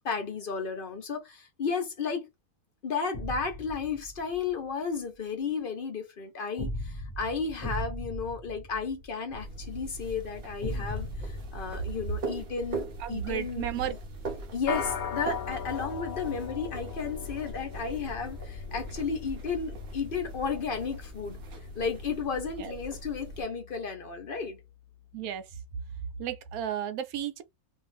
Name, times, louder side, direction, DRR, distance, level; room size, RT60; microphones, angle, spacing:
voice 1, 0.0-2.2 2.8-14.0 14.5-21.4 21.7-24.6, left 5 dB, 45° left, 0.7 m, -33 dB
sound 1, 3.1-4.5 6.6-9.5 10.6-12.8, equal, 20° left, 0.9 m, -38 dB
sound 2, 9.3-23.4, right 2 dB, 55° right, 0.6 m, -41 dB
voice 2, 13.0-13.9 22.6-22.7 25.1-25.5 26.2-27.4, right 10 dB, 80° right, 1.0 m, -33 dB
sound 3, 14.7-24.2, left 8 dB, 70° left, 1.0 m, -40 dB
2.6 x 2.4 x 3.3 m
omnidirectional pair, 1.6 m